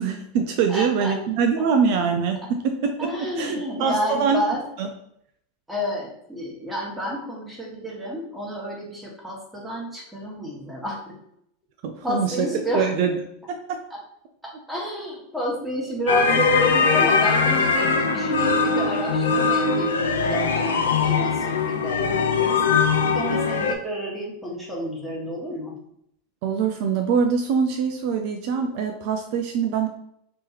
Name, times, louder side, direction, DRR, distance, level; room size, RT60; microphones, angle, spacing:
voice 1, 0.0-3.1 3.4-4.4 4.8-4.9 11.8-12.5 12.7-13.1 13.5-13.8 26.4-29.9, right 6 dB, 55° right, 5 dB, 0.4 m, -23 dB
voice 2, 0.7-1.1 3.0-4.7 5.7-11.2 12.0-12.9 13.9-14.0 14.4-22.6 23.1-25.7, equal, 5° right, -3 dB, 1.5 m, -30 dB
sound 1, 16.1-23.7, left 5 dB, 80° left, 0.4 m, -21 dB
3.4 x 3.0 x 2.9 m, 0.72 s
hypercardioid pair, 90°, 0 cm